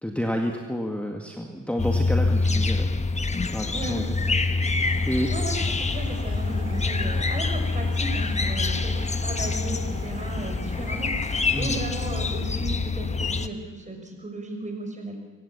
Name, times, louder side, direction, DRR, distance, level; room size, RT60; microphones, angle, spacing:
voice 1, 0.0-4.1 4.5-4.8 5.1-5.3 11.5-11.8, equal, 5° left, 2 dB, 2.0 m, -30 dB
sound 1, 1.8-13.5, left 3 dB, 20° left, 1.2 m, -26 dB
voice 2, 3.7-4.1 5.3-15.2, right 2 dB, 25° right, 3 dB, 6.0 m, -35 dB
sound 2, 4.8-12.4, right 4 dB, 50° right, 5.6 m, -45 dB
25.0 x 16.5 x 7.3 m, 1.4 s
cardioid pair, 90°, 30 cm